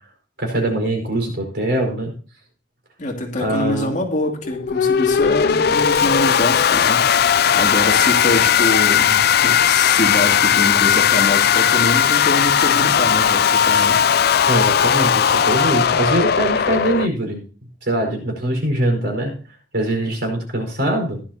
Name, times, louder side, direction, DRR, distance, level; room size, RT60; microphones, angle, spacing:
voice 1, 0.4-2.1 3.4-3.9 8.2-8.4 14.4-17.4 17.8-19.4 19.7-21.2, right 1 dB, 65° right, 2 dB, 4.8 m, -22 dB
voice 2, 3.0-7.1 7.5-14.0, left 1 dB, 45° left, 1 dB, 2.5 m, -24 dB
sound 1, 4.4-17.1, left 8 dB, 60° left, 0.4 m, -17 dB
16.0 x 11.5 x 2.9 m, 0.40 s
head